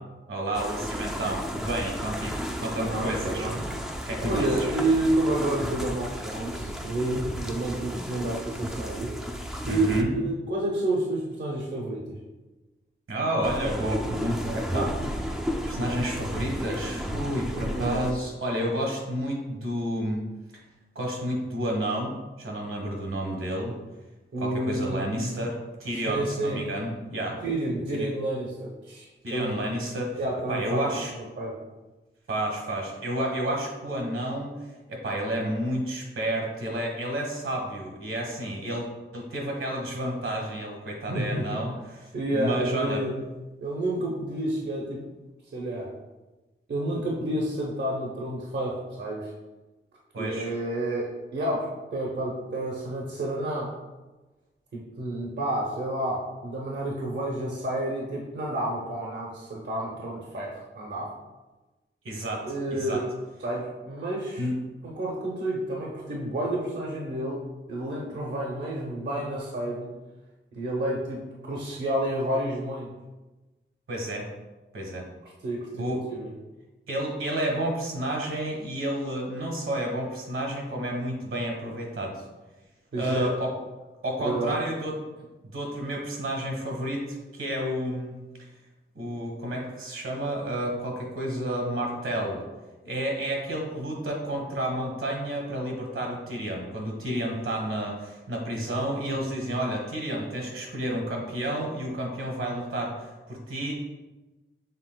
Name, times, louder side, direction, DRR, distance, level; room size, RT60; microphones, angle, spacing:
voice 1, 0.3-3.5 4.1-4.7 9.6-10.1 13.1-15.4 15.6-20.2 20.5-20.6 20.9-22.1 22.4-23.7 24.4-27.4 28.0-28.1 29.2-30.2 30.5-31.1 32.3-34.5 34.9-38.9 39.1-43.0 50.1-50.5 62.0-63.1 64.4-64.5 73.9-74.3 74.7-75.0 75.7-76.0 76.9-82.2 82.9-83.5 84.0-85.0 85.5-88.1 88.9-92.4 92.8-103.7, right 1 dB, 80° right, 0 dB, 1.3 m, -30 dB
sound 1, 0.5-10.0 13.4-18.1, equal, ahead, 0.5 m, -33 dB
voice 2, 2.8-3.6 4.2-9.2 9.7-12.0 17.6-18.0 24.3-25.4 26.1-26.6 27.4-29.5 30.2-31.1 31.4-31.6 41.1-41.5 42.1-43.3 43.6-45.0 45.5-45.9 46.7-49.3 50.2-53.7 54.7-61.1 62.4-63.1 63.4-64.5 64.8-67.4 67.7-69.9 70.5-72.9 75.2-76.3 82.9-83.3 84.2-84.6 98.7-98.9, right 1 dB, 55° right, -3 dB, 0.8 m, -30 dB
6.7 x 3.5 x 2.3 m, 1.1 s
wide cardioid pair, 115°, 21 cm